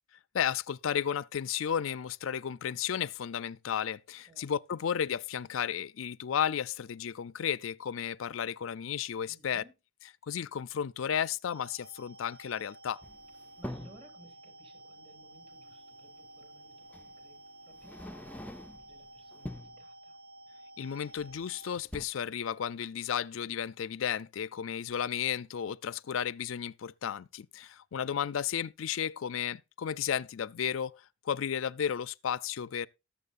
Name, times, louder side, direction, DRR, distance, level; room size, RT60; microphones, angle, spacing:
voice 1, 0.3-9.6 10.3-13.0 20.8-32.9, left 8 dB, 70° left, 0.4 m, -33 dB
voice 2, 9.3-9.7 13.6-20.2, right 1 dB, 30° right, 2.7 m, -60 dB
sound 1, 11.5-21.8, right 1 dB, 75° right, 0.9 m, -52 dB
sound 2, 13.0-14.1 15.7-15.8 16.9-17.1 17.7-18.9 19.3-19.8 21.2-21.5 21.8-22.1, left 1 dB, 5° left, 0.4 m, -44 dB
19.0 x 7.2 x 2.5 m
head